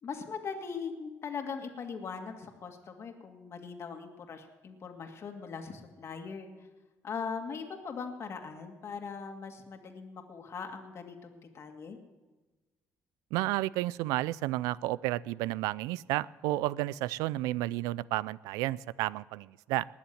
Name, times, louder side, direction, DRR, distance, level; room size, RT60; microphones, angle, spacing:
voice 1, 0.0-6.5 7.0-12.0, left 5 dB, 50° left, 4 dB, 2.1 m, -40 dB
voice 2, 13.3-19.9, right 17 dB, 90° right, 21 dB, 0.4 m, -32 dB
20.0 x 7.2 x 9.3 m, 1.2 s
cardioid pair, 85°, 6 cm